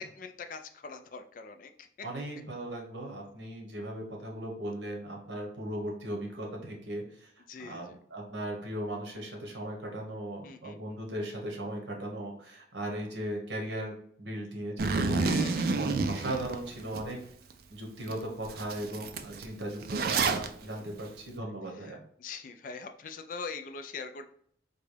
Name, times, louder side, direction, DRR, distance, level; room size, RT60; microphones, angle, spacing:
voice 1, 0.0-1.9 7.5-8.0 10.4-10.8 15.2-15.7 21.8-21.9 22.2-24.3, left 5 dB, 45° left, 7 dB, 0.3 m, -42 dB
voice 2, 2.0-7.3 7.6-15.4 15.7-17.2 17.7-22.0, right 1 dB, 75° right, 1 dB, 1.0 m, -38 dB
Zipper (clothing), 14.8-17.0 17.5-17.6 18.1-18.2 18.4-20.5, right 4 dB, 50° right, 0.3 m, -29 dB
3.9 x 2.3 x 3.2 m, 0.64 s
head